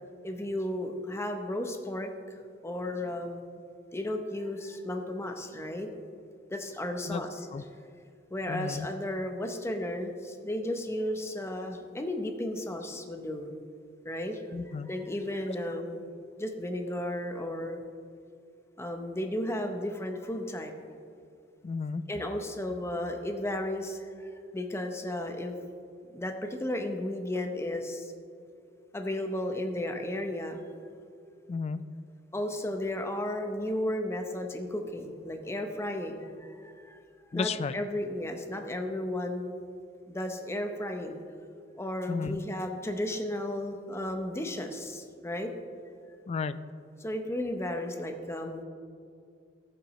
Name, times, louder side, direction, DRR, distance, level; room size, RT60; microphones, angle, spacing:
voice 1, 0.2-3.4 3.9-5.9 6.5-7.5 8.3-13.5 14.0-16.0 16.4-17.8 18.8-20.7 22.1-24.1 24.5-25.5 26.0-28.1 28.9-30.6 32.3-37.0 37.3-39.5 40.1-41.2 41.8-45.5 47.0-48.6, left 1 dB, 15° left, 5 dB, 0.7 m, -34 dB
voice 2, 8.5-8.9 14.5-14.9 21.6-22.0 31.5-31.8 37.3-37.7 42.1-42.4 46.3-46.6, left 4 dB, 35° left, 14 dB, 0.3 m, -32 dB
14.0 x 7.8 x 3.1 m, 2.3 s
head